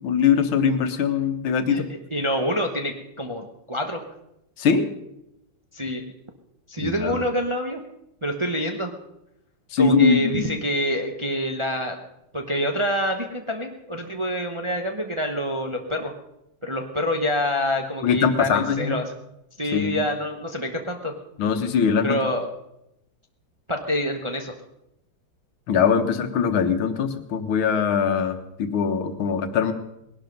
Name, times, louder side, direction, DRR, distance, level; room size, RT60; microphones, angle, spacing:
voice 1, 0.0-1.8 4.6-4.9 6.8-7.2 9.7-10.5 18.0-19.0 19.7-20.0 21.4-22.2 25.7-29.7, left 6 dB, 90° left, 8 dB, 2.0 m, -22 dB
voice 2, 2.1-4.0 5.7-6.0 6.7-7.8 8.2-8.9 9.8-12.0 12.3-16.1 16.6-19.0 19.6-21.1 22.0-22.5 23.7-24.5, equal, 25° right, 3 dB, 0.7 m, -26 dB
19.5 x 11.5 x 5.3 m, 0.84 s
omnidirectional pair, 2.2 m